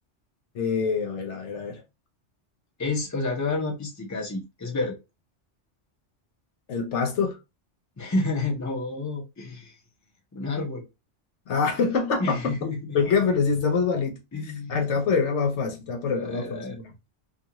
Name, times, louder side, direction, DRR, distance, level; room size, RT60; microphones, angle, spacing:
voice 1, 0.5-1.8 6.7-7.4 11.5-12.3 12.9-14.2 14.7-16.8, left 5 dB, 75° left, 1.0 m, -25 dB
voice 2, 2.8-5.0 8.0-9.8 10.3-10.8 12.2-13.0 14.3-15.0 16.1-16.8, left 3 dB, 20° left, 0.6 m, -30 dB
2.4 x 2.3 x 2.8 m
omnidirectional pair, 1.2 m